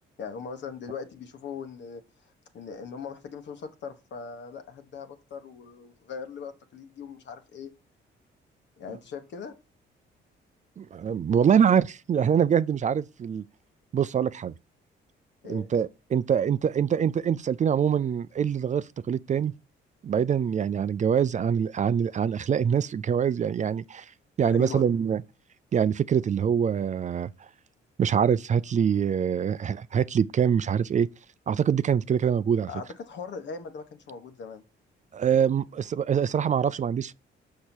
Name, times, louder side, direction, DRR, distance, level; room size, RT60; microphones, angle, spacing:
voice 1, 0.2-2.0 2.5-7.7 8.8-9.5 15.4-15.7 24.5-24.8 32.7-34.6, left 6 dB, 65° left, 1.3 m, -39 dB
voice 2, 10.8-13.4 13.9-14.5 15.4-19.5 20.0-24.1 24.4-25.2 25.7-27.3 28.0-31.1 31.5-32.7 35.1-37.1, right 8 dB, 40° right, 0.4 m, -24 dB
6.6 x 5.7 x 4.5 m
cardioid pair, 90°, 20 cm